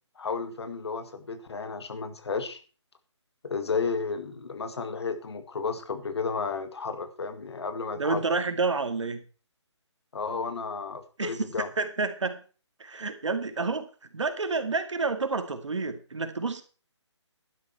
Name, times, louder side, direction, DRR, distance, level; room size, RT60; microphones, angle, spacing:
voice 1, 0.2-2.6 3.4-8.2 10.1-11.7, left 5 dB, 60° left, 10 dB, 2.0 m, -32 dB
voice 2, 7.9-9.3 11.2-12.4 12.8-16.6, right 4 dB, 75° right, 8 dB, 2.2 m, -29 dB
11.5 x 11.0 x 4.5 m, 0.36 s
figure-of-eight pair, 150°, 15 cm